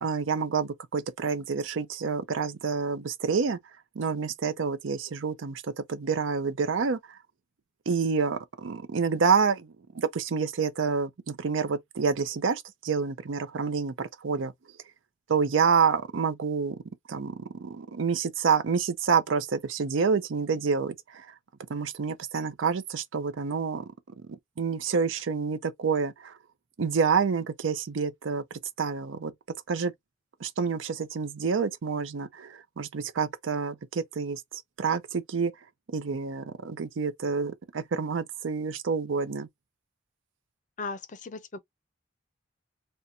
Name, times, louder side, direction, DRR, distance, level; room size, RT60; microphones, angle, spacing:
voice 1, 0.0-3.6 4.0-5.6 5.9-7.0 7.9-14.5 15.3-16.8 17.1-21.3 21.7-23.8 24.3-26.3 26.8-28.4 28.8-29.3 29.7-29.9 30.4-34.4 34.8-35.5 35.9-39.5, right 5 dB, 80° right, 0.5 m, -28 dB
voice 2, 40.8-41.6, left 3 dB, 40° left, 0.5 m, -37 dB
4.2 x 2.1 x 2.5 m
head